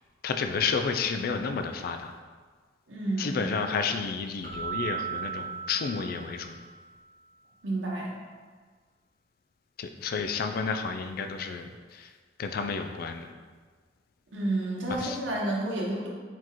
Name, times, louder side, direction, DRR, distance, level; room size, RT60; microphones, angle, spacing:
voice 1, 0.2-2.2 3.2-6.6 9.8-12.1 12.4-13.3 15.0-15.2, left 5 dB, 50° left, 6 dB, 0.3 m, -31 dB
voice 2, 2.9-3.4 7.6-8.2 14.3-16.1, right 2 dB, 75° right, -4 dB, 0.8 m, -30 dB
Keyboard (musical), 4.4-6.8, right 7 dB, 45° right, 0.6 m, -36 dB
4.7 x 3.8 x 2.9 m, 1.5 s
head